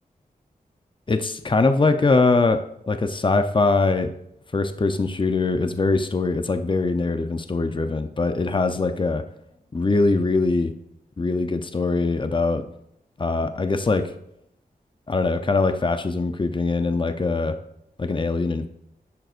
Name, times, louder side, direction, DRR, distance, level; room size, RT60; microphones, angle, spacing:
voice 1, 1.1-4.1 4.5-9.2 9.7-10.7 11.2-12.7 13.2-14.1 15.1-17.6 18.0-18.7, left 3 dB, 30° left, 9 dB, 0.6 m, -22 dB
10.5 x 6.5 x 2.5 m, 0.77 s
cardioid pair, 55°, 16 cm